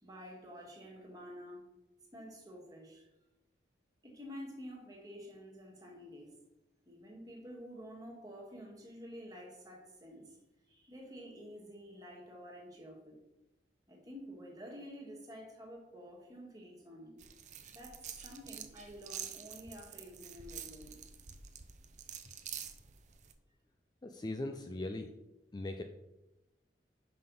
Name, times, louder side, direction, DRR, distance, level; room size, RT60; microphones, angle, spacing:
voice 1, 0.0-1.6 2.1-3.1 4.0-6.3 6.9-10.4 10.7-13.2 13.9-17.2 17.7-21.0, equal, 20° right, -2 dB, 1.8 m, -50 dB
sound 1, 17.2-23.3, right 9 dB, 40° right, 0.6 m, -47 dB
voice 2, 24.0-25.1 25.5-25.8, left 2 dB, 25° left, 5 dB, 0.4 m, -39 dB
5.7 x 5.5 x 5.4 m, 0.97 s
head